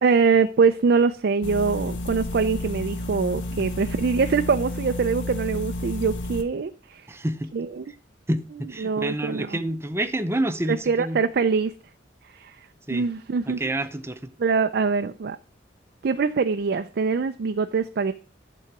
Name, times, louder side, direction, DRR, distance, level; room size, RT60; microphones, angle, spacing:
voice 1, 0.0-7.1 7.5-7.8 8.8-9.6 10.7-11.7 12.3-13.6 14.4-15.4 16.0-18.1, right 5 dB, 60° right, 0.4 m, -23 dB
sound 1, 1.4-6.4, left 1 dB, 85° left, 0.9 m, -31 dB
voice 2, 7.1-7.5 8.3-11.2 12.9-13.1 13.5-14.3, right 1 dB, 15° right, 0.6 m, -28 dB
11.0 x 3.9 x 5.8 m
head